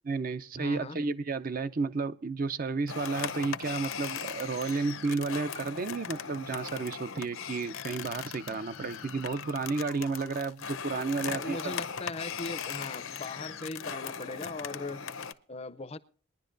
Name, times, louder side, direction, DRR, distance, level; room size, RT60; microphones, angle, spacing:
voice 1, 0.1-11.8, right 4 dB, 40° right, 0.5 m, -32 dB
voice 2, 0.6-1.0 11.2-15.0 15.5-16.0, left 3 dB, 30° left, 0.5 m, -39 dB
sound 1, 2.9-15.3, left 7 dB, 80° left, 0.7 m, -39 dB
21.5 x 10.5 x 2.6 m
head